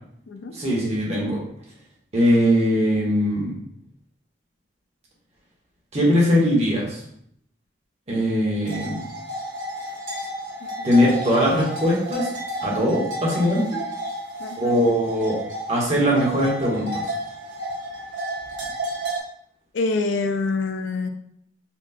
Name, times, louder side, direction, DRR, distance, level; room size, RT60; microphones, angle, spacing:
voice 1, 0.5-1.4 2.1-3.6 5.9-7.0 8.1-9.0 10.8-12.3 12.6-13.8 14.6-15.4 15.7-17.1, equal, 35° right, -4 dB, 1.2 m, -21 dB
sound 1, 8.6-19.2, right 1 dB, 80° right, 1.4 m, -32 dB
voice 2, 10.6-10.9 14.4-14.8 19.7-21.1, left 3 dB, 80° left, 7 dB, 0.5 m, -26 dB
4.4 x 2.3 x 4.1 m, 0.69 s
head